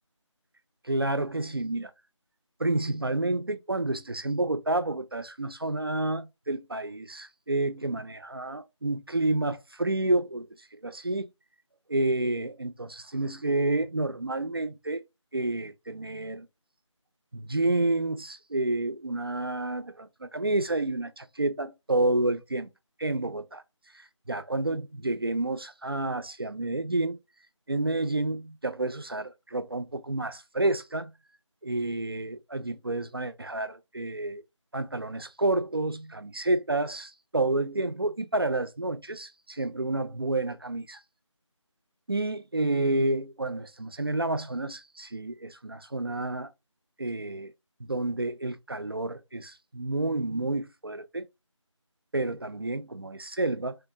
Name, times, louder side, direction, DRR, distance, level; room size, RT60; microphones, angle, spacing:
voice 1, 0.8-1.9 2.6-10.5 10.8-11.3 11.9-15.0 15.3-16.5 17.3-22.7 23.0-23.6 23.9-27.2 27.7-31.1 31.6-34.4 34.7-41.0 42.1-46.5 47.0-47.5 47.8-51.3 52.1-53.8, right 2 dB, 50° right, 0.4 m, -29 dB
3.3 x 2.3 x 2.7 m
figure-of-eight pair, 165°, 16 cm